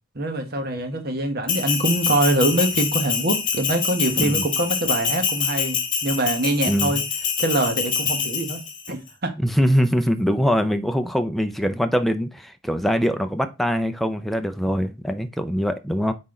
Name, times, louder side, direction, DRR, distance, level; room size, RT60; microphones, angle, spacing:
voice 1, 0.1-7.0 7.4-8.6 8.9-9.3, right 1 dB, 45° right, 1.3 m, -24 dB
Bell, 1.5-8.9, left 6 dB, 35° left, 1.6 m, -25 dB
voice 2, 6.7-7.0 9.4-16.1, equal, ahead, 0.4 m, -23 dB
5.9 x 4.2 x 3.8 m
head